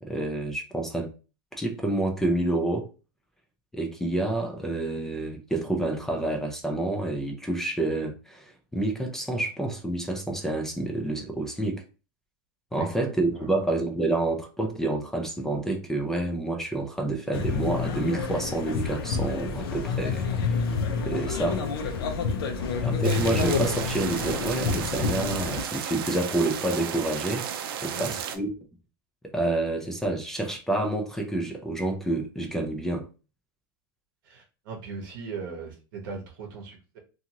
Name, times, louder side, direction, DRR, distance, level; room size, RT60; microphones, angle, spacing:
voice 1, 0.0-1.1 1.5-2.9 3.7-11.8 12.7-20.6 21.1-21.6 22.8-28.5 29.3-33.1, right 2 dB, 5° left, 0.3 m, -28 dB
sound 1, 17.3-25.6, left 5 dB, 90° left, 0.6 m, -28 dB
sound 2, 23.0-28.4, right 8 dB, 75° right, 0.5 m, -34 dB
voice 2, 27.8-28.2 34.2-37.0, right 4 dB, 60° right, 0.8 m, -39 dB
2.6 x 2.5 x 2.8 m
supercardioid pair, 160°, 12 cm